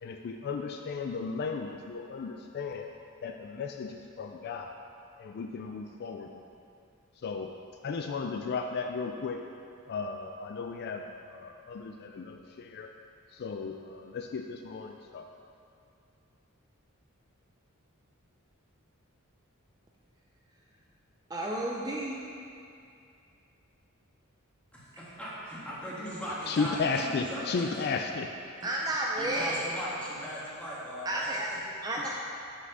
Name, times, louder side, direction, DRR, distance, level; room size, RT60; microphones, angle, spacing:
voice 1, 0.0-2.9 3.2-4.7 5.2-6.4 7.2-7.5 7.8-9.4 9.9-12.9 13.3-15.3 26.5-28.3, left 4 dB, 50° left, 4 dB, 0.3 m, -35 dB
voice 2, 21.3-22.2 28.6-29.5 31.1-31.5 31.8-32.1, right 1 dB, 20° right, -2 dB, 0.5 m, -31 dB
voice 3, 24.7-27.7 28.6-31.6, equal, 5° left, -8 dB, 1.7 m, -39 dB
5.9 x 5.7 x 6.2 m, 2.5 s
head